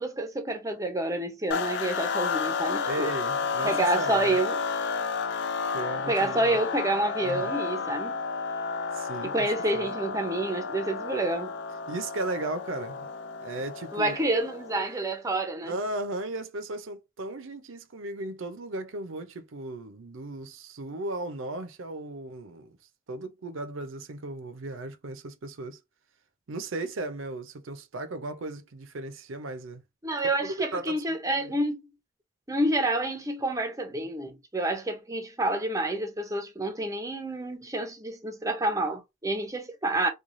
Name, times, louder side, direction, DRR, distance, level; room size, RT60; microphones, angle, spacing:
voice 1, 0.0-3.1 3.6-4.6 6.1-8.2 9.2-11.5 13.9-15.7 30.0-31.8 32.5-40.1, right 2 dB, 15° right, 0.5 m, -28 dB
sound 1, 1.5-14.9, left 5 dB, 55° left, 0.3 m, -32 dB
voice 2, 2.8-4.4 5.7-6.6 7.2-7.5 8.9-9.9 11.9-13.1 13.4-14.2 15.6-22.8 23.1-25.8 26.5-29.8 30.4-31.2 31.4-31.6, right 2 dB, 70° right, 0.6 m, -36 dB
3.1 x 2.3 x 2.5 m
head